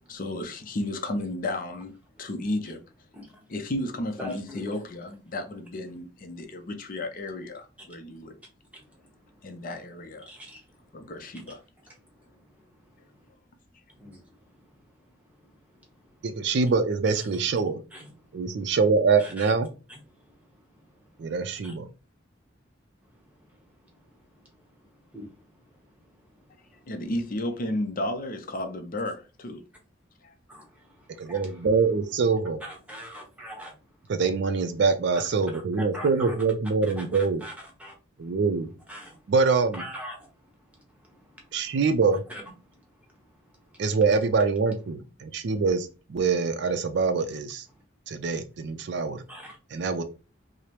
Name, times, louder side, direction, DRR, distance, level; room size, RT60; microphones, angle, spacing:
voice 1, 0.1-1.9 2.2-2.8 3.5-8.3 9.4-10.3 10.9-11.6 26.9-29.6 30.2-30.3, left 1 dB, 45° left, 0.5 m, -33 dB
voice 2, 4.2-5.2 8.7-9.8 10.3-11.6 11.9-13.3 13.9-16.3 17.1-17.3 17.9-18.6 19.2-19.5 19.9-21.3 21.6-21.7 23.0-26.9 30.5-31.7 32.6-33.8 35.1-35.2 35.5-36.4 37.0-37.9 38.3-38.4 38.9-39.3 39.7-41.8 42.3-42.4 42.7-43.8 49.3-49.6, equal, 5° right, 0.9 m, -46 dB
voice 3, 16.2-17.8 18.3-19.7 21.2-21.9 31.2-32.6 34.1-37.4 38.2-38.7 39.3-39.8 41.5-42.2 43.8-47.6 48.1-49.2 49.7-50.0, right 4 dB, 60° right, 0.4 m, -24 dB
4.8 x 2.0 x 2.9 m
head